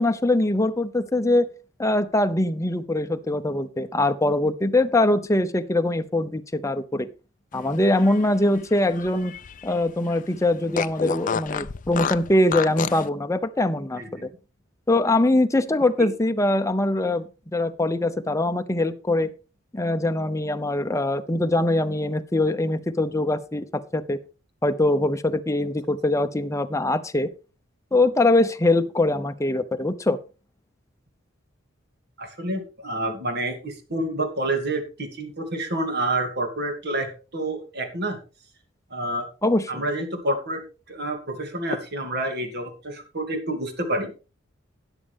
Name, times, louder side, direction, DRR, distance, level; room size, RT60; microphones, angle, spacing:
voice 1, 0.0-1.5 1.8-7.1 7.5-9.3 9.6-14.3 14.9-19.3 19.7-23.7 23.9-24.2 24.6-27.3 27.9-30.2 39.4-39.8, left 2 dB, 15° left, 8 dB, 0.8 m, -22 dB
Fart, 7.7-9.8 10.1-10.2 10.7-13.1, left 6 dB, 40° left, 0.5 m, -30 dB
voice 2, 32.2-38.2 38.9-39.3 39.7-40.6 40.9-44.1, right 1 dB, 55° right, 5 dB, 2.7 m, -28 dB
13.0 x 10.0 x 3.5 m, 0.33 s
head